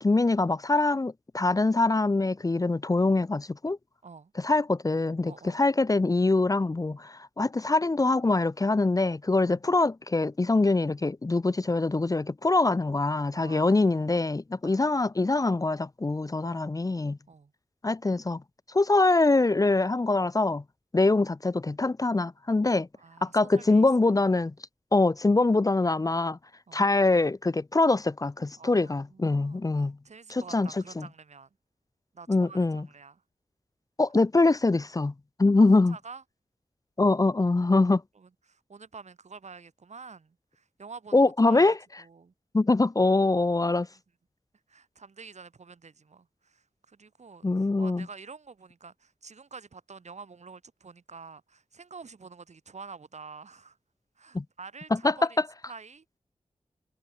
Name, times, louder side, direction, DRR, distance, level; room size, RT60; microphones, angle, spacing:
voice 1, 0.0-3.8 4.4-17.2 17.8-18.4 18.7-20.6 20.9-22.9 23.2-24.5 24.9-26.4 26.7-30.0 30.3-30.7 31.0-31.1 32.3-32.9 34.0-35.1 35.4-36.0 37.0-38.0 41.1-41.8 42.5-43.9 47.4-48.1 54.3-54.4 55.0-55.1, left 3 dB, 30° left, 0.6 m, -24 dB
voice 2, 5.2-5.6 9.4-9.6 13.3-14.3 14.6-15.0 16.4-16.7 17.3-17.5 22.9-24.4 26.7-26.9 28.6-31.5 32.1-33.2 35.6-36.2 37.0-37.1 38.2-42.3 43.9-44.0 44.7-53.8 54.2-55.4 55.7-56.0, right 5 dB, 75° right, 5.5 m, -48 dB
cardioid pair, 55°, 12 cm